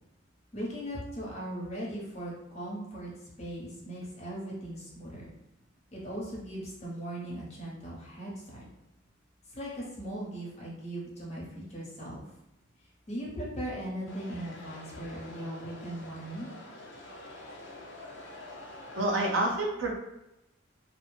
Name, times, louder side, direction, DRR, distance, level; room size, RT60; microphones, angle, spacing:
voice 1, 0.5-3.1 3.4-5.3 5.9-8.6 9.5-12.2 13.1-16.5, right 1 dB, 30° left, -5 dB, 0.9 m, -38 dB
sound 1, 14.1-19.3, left 1 dB, 60° left, 0.5 m, -46 dB
voice 2, 18.9-20.0, right 1 dB, 70° right, -1 dB, 0.6 m, -28 dB
2.7 x 2.1 x 3.2 m, 0.91 s
head